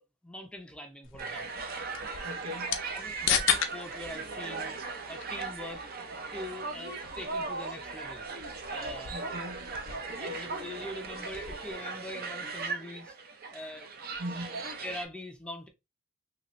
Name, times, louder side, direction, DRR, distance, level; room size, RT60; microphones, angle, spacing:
voice 1, 0.2-1.6 2.9-4.8 5.1-5.8 6.3-8.3 8.7-9.1 9.4-9.5 9.9-13.2 13.5-14.0 14.8-15.7, left 1 dB, 5° left, 0.5 m, -43 dB
sound 1, 1.0-11.7, left 8 dB, 65° left, 0.6 m, -37 dB
sound 2, 1.2-15.0, right 4 dB, 45° right, 0.5 m, -38 dB
voice 2, 2.2-2.8 9.1-9.8 10.1-10.6 14.2-14.7, equal, 80° right, 0.8 m, -40 dB
2.9 x 2.8 x 3.0 m
head